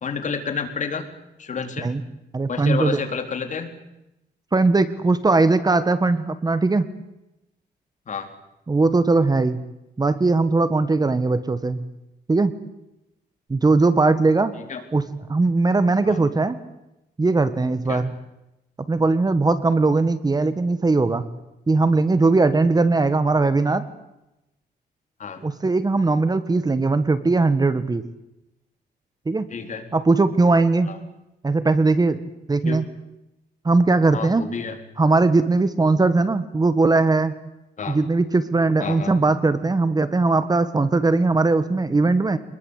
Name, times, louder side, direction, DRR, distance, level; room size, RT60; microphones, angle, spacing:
voice 1, 0.0-1.1 1.4-1.9 2.5-3.7 8.1-8.3 14.5-14.8 16.0-16.2 17.9-18.0 25.2-25.4 29.5-29.8 30.9-31.0 32.6-32.9 34.1-34.8 37.8-38.0 38.8-39.2, left 5 dB, 45° left, 6 dB, 4.1 m, -30 dB
voice 2, 2.3-3.0 4.5-6.9 8.7-9.6 10.0-11.8 12.3-12.5 13.5-14.5 14.9-16.6 17.2-18.1 18.9-21.3 21.7-23.8 25.4-28.0 29.2-29.5 29.9-30.9 31.4-32.2 32.5-32.8 33.6-34.4 35.0-37.3 37.9-42.4, right 3 dB, 25° right, 12 dB, 1.6 m, -19 dB
26.0 x 21.0 x 8.4 m, 0.91 s
cardioid pair, 100°, 17 cm